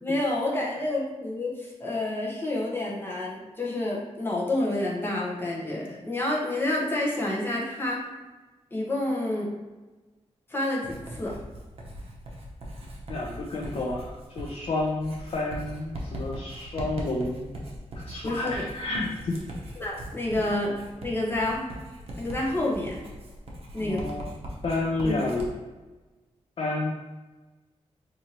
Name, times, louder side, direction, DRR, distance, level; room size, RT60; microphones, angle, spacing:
voice 1, 0.0-8.0 8.7-9.5 10.5-11.3 18.2-18.7 19.8-20.7 21.0-21.7 22.2-23.0 23.7-24.0 25.0-25.2, left 1 dB, 20° left, -4 dB, 0.8 m, -29 dB
Writing, 10.8-25.5, right 1 dB, 55° right, 0.7 m, -40 dB
voice 2, 13.1-17.5 18.1-19.3 23.8-24.3 24.6-25.5 26.6-26.9, left 2 dB, 55° left, -1 dB, 0.4 m, -30 dB
4.3 x 2.6 x 2.9 m, 1.2 s
wide cardioid pair, 175°, 12 cm